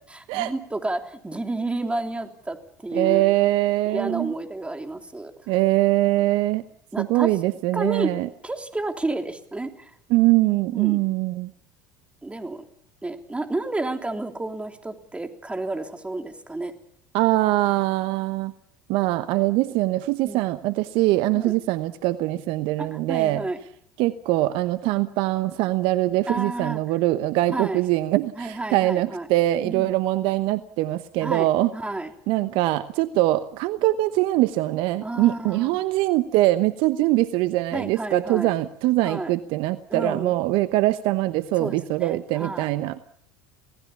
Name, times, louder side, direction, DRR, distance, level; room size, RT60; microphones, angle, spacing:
voice 1, 0.3-3.2 3.9-5.3 6.9-7.3 7.7-8.1 8.4-9.9 10.7-11.0 12.2-12.6 13.0-16.7 20.2-20.4 21.3-21.6 22.8-23.6 26.3-26.8 27.5-27.8 28.4-29.3 29.6-29.9 31.2-31.5 31.7-32.1 35.0-35.7 37.7-38.5 39.0-39.3 39.9-40.3 41.6-42.7, right 2 dB, 10° right, 5 dB, 3.3 m, -30 dB
voice 2, 2.9-4.3 5.5-6.6 7.0-8.3 10.1-11.5 17.1-18.5 18.9-23.4 24.0-31.7 32.3-43.0, right 17 dB, 60° right, 13 dB, 1.0 m, -22 dB
27.5 x 18.5 x 7.2 m, 0.67 s
hypercardioid pair, 75°, 10 cm